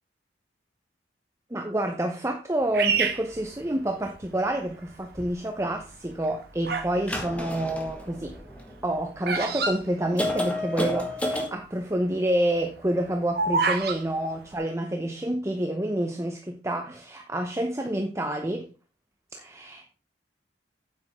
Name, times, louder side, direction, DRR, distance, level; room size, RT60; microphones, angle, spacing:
voice 1, 1.5-8.4 8.8-18.7 19.3-20.0, right 1 dB, 15° right, 0.8 m, -28 dB
Bird vocalization bird call bird song, 2.7-4.3 4.9-5.3 6.1-7.0 7.3-10.8 11.0-11.1 11.3-11.7 12.1-14.0, right 4 dB, 55° right, 1.5 m, -28 dB
sound 1, 5.1-5.3 7.0-8.9 9.5-9.6 10.2-11.5, left 1 dB, 5° left, 1.7 m, -30 dB
9.0 x 8.2 x 3.6 m
head